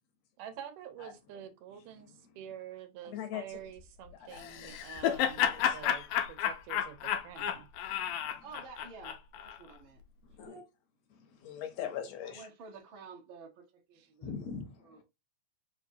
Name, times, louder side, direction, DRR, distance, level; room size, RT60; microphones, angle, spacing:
voice 1, 0.4-7.7 14.0-14.1, right 10 dB, 90° right, 2.4 m, -47 dB
voice 2, 3.0-3.6 4.1-4.8 5.5-5.9 7.9-8.4 10.2-10.6 11.1-12.5 14.2-15.0, left 8 dB, 70° left, 1.7 m, -42 dB
Laughter, 4.4-9.6, left 9 dB, 85° left, 2.2 m, -32 dB
voice 3, 8.4-10.0 10.4-10.6 12.2-14.3 14.8-15.0, right 4 dB, 55° right, 1.5 m, -51 dB
5.4 x 2.8 x 2.6 m
omnidirectional pair, 3.6 m